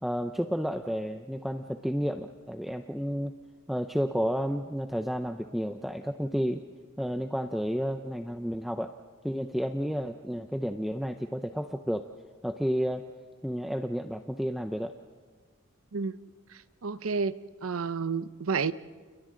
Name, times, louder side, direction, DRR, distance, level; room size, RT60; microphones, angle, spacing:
voice 1, 0.0-3.3 3.7-6.6 7.0-8.9 9.2-12.1 12.4-13.0 13.4-14.9, equal, ahead, 6 dB, 0.5 m, -31 dB
voice 2, 16.5-17.3 17.6-18.7, right 5 dB, 75° right, 15 dB, 0.7 m, -30 dB
30.0 x 30.0 x 3.9 m, 1.5 s
head